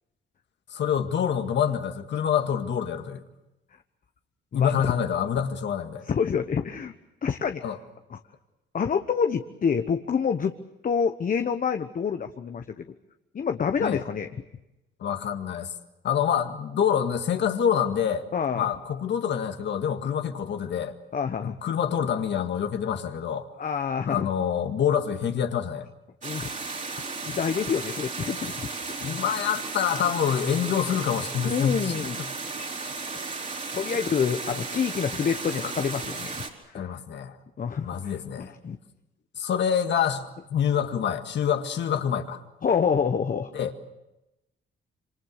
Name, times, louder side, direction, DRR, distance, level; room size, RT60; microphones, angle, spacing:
voice 1, 0.7-3.2 4.5-6.1 7.6-7.8 13.8-14.1 15.0-15.7 16.0-18.3 18.5-20.9 21.4-23.5 24.1-25.9 29.0-32.1 36.7-37.4 37.8-38.5 39.4-42.4 43.5-43.8, left 8 dB, 65° left, 6 dB, 2.0 m, -26 dB
voice 2, 4.5-4.9 6.1-6.9 7.2-7.6 8.1-8.2 8.7-10.5 10.8-12.8 13.3-14.3 18.3-18.7 21.1-21.5 23.6-24.3 26.2-26.5 27.2-28.7 31.4-32.2 32.6-32.7 33.7-36.4 36.7-36.9 37.6-38.1 38.4-38.8 42.6-43.5, left 6 dB, 45° left, 7 dB, 1.1 m, -27 dB
sound 1, 26.2-36.5, right 4 dB, 40° right, 4.2 m, -34 dB
26.5 x 25.0 x 6.6 m, 0.94 s
cardioid pair, 90°, 20 cm